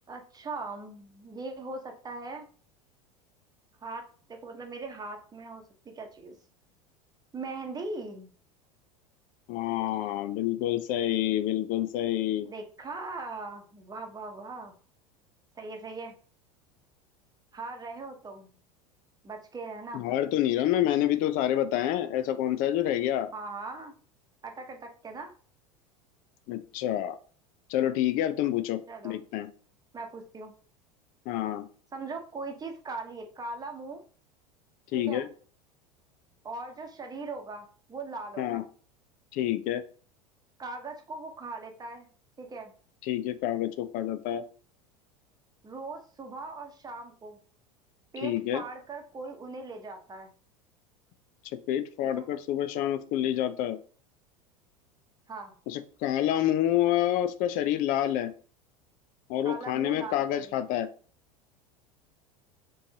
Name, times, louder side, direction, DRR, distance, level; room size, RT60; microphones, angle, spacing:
voice 1, 0.1-2.5 3.8-5.6 5.9-6.4 7.3-8.3 12.4-14.7 15.6-16.2 17.5-18.5 19.2-20.0 23.3-23.9 24.4-25.3 28.9-29.1 29.9-30.5 31.9-34.0 34.9-35.3 36.4-38.6 40.6-42.1 42.4-42.7 45.6-47.4 48.1-50.3 52.2-52.3 55.3-55.6 59.4-60.6, right 3 dB, 20° right, 4 dB, 0.9 m, -40 dB
voice 2, 9.5-12.5 19.9-23.3 26.5-27.2 27.7-29.5 31.3-31.7 34.9-35.3 38.4-38.6 39.3-39.8 43.0-44.4 48.2-48.6 51.7-53.8 55.7-58.3 59.3-60.9, left 12 dB, 45° left, 12 dB, 0.5 m, -28 dB
4.4 x 3.1 x 2.9 m, 0.41 s
figure-of-eight pair, 80°, 19 cm